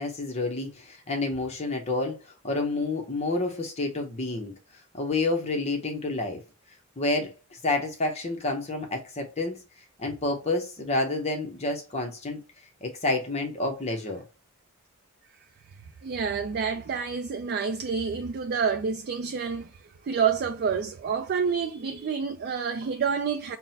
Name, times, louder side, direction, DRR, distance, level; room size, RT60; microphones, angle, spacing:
voice 1, 0.0-2.2 2.4-4.5 4.9-6.4 7.0-9.6 10.0-12.4 12.8-14.2, left 2 dB, 30° left, 0.7 m, -29 dB
voice 2, 16.0-19.7 20.1-23.6, right 6 dB, 45° right, 0.3 m, -28 dB
5.8 x 2.1 x 2.7 m
head